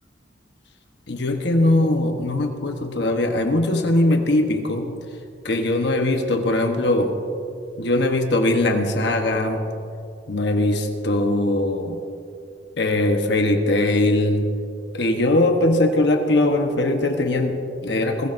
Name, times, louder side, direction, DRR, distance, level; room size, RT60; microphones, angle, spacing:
voice 1, 1.1-4.9 5.4-7.2 7.8-9.7 10.3-12.0 12.8-14.4 14.9-18.3, left 1 dB, 65° left, 4 dB, 1.1 m, -20 dB
21.5 x 15.0 x 2.6 m, 2.5 s
head